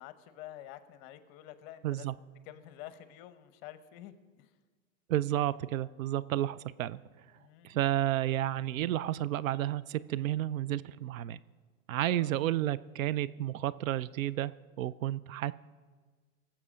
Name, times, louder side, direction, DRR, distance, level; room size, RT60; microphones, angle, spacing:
voice 1, 0.0-2.1 2.4-4.5 7.3-7.8 12.1-12.4, left 12 dB, 40° left, 13 dB, 0.8 m, -49 dB
voice 2, 1.8-2.1 5.1-7.0 7.6-11.4 11.9-14.5 14.8-15.5, right 13 dB, 70° right, 17 dB, 0.5 m, -31 dB
18.0 x 7.4 x 5.0 m, 1.4 s
hypercardioid pair, 115°, 42 cm